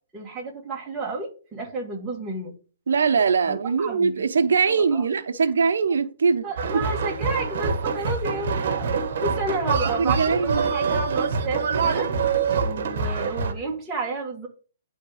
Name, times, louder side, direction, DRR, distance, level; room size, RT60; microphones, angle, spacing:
voice 1, 0.1-2.5 3.5-4.3 4.7-5.0 6.4-12.1 12.6-14.5, right 3 dB, 10° right, 1.5 m, -31 dB
voice 2, 2.9-6.4 6.7-6.8 8.0-8.1 10.0-10.6, right 5 dB, 90° right, 0.8 m, -22 dB
sound 1, 6.6-13.5, right 5 dB, 50° right, 1.3 m, -25 dB
10.0 x 3.6 x 4.9 m
hypercardioid pair, 170°, 0 cm